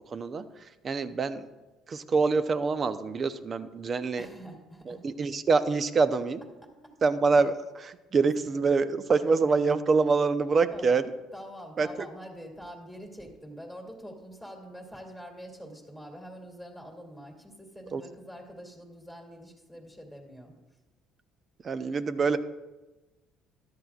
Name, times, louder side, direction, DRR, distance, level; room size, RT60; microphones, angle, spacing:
voice 1, 0.1-1.5 1.9-4.3 4.9-6.4 7.0-11.0 11.8-11.9 17.9-18.0 21.6-22.4, right 4 dB, 40° right, 12 dB, 0.7 m, -26 dB
voice 2, 4.2-5.2 6.6-6.7 8.3-8.7 10.7-11.0 11.3-20.5, equal, 5° right, 0 dB, 2.5 m, -45 dB
13.5 x 11.5 x 2.4 m, 1.1 s
supercardioid pair, 70°, 0 cm